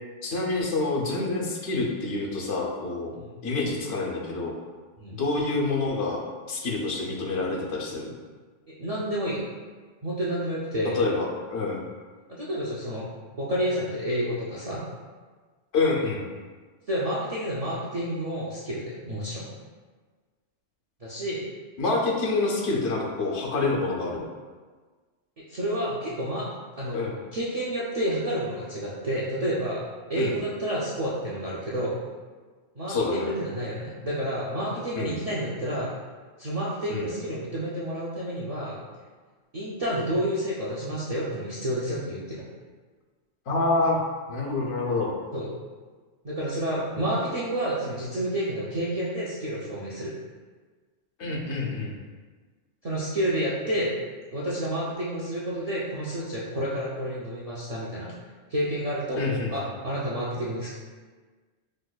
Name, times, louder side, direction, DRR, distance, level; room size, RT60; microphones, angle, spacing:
voice 1, 0.2-3.1 3.4-4.5 5.1-6.2 6.5-8.1 10.9-11.8 15.7-16.3 21.8-24.3 26.9-27.2 30.2-30.4 32.9-33.3 34.9-35.2 36.9-37.1 43.5-44.0 44.3-45.1 51.2-51.9 59.2-59.7, left 3 dB, 75° left, -2 dB, 0.9 m, -27 dB
voice 2, 8.8-9.4 10.0-11.0 12.3-13.1 13.4-14.9 16.9-19.5 21.0-21.5 25.4-26.4 26.8-27.0 27.3-32.0 32.8-35.9 36.4-38.8 39.5-42.4 45.3-45.5 46.2-50.1 52.8-54.0 54.3-58.1 58.5-59.2 59.5-60.8, equal, 55° right, -8 dB, 0.4 m, -30 dB
4.9 x 2.1 x 2.2 m, 1.4 s
omnidirectional pair, 1.2 m